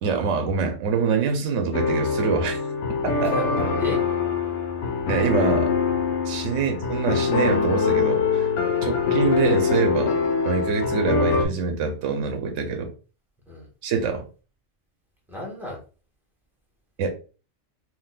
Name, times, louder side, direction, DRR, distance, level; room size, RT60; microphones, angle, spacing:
voice 1, 0.0-2.6 3.0-3.3 5.1-5.7 6.2-8.5 8.8-10.2 10.4-12.9 13.8-14.2 17.0-17.1, right 5 dB, 85° right, 5 dB, 0.9 m, -25 dB
sound 1, 1.7-11.4, left 5 dB, 75° left, 1.0 m, -23 dB
voice 2, 3.2-4.0 6.6-6.7 8.7-8.9 13.5-13.7 15.3-15.8, left 1 dB, ahead, -2 dB, 1.0 m, -33 dB
3.6 x 2.6 x 2.3 m, 0.35 s
omnidirectional pair, 1.3 m